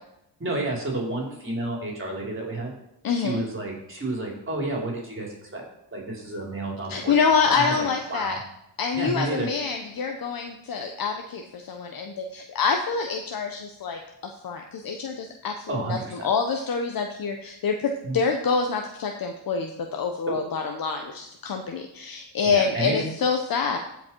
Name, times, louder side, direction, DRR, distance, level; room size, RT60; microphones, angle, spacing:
voice 1, 0.4-2.7 3.1-5.6 5.9-8.4 8.9-9.5 15.7-16.3 18.0-18.2 20.3-20.4 22.4-23.0, right 2 dB, 30° right, -2 dB, 3.8 m, -31 dB
voice 2, 3.0-3.4 6.9-8.4 8.8-23.8, left 5 dB, 55° left, 3 dB, 1.1 m, -26 dB
14.5 x 5.3 x 4.6 m, 0.82 s
cardioid pair, 90°, 42 cm